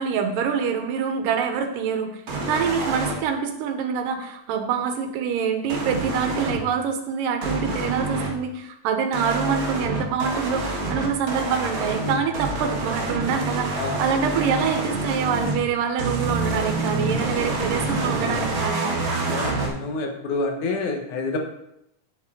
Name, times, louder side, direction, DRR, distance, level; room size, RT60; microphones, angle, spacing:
voice 1, 0.0-18.9, right 6 dB, 85° right, 6 dB, 2.6 m, -25 dB
sound 1, 2.3-3.1 5.7-6.6 7.4-8.3 9.1-15.6 16.0-19.7, right 2 dB, 45° right, 1.9 m, -27 dB
voice 2, 19.3-21.4, left 3 dB, 70° left, 3 dB, 2.5 m, -28 dB
8.9 x 8.2 x 3.7 m, 0.81 s
omnidirectional pair, 3.8 m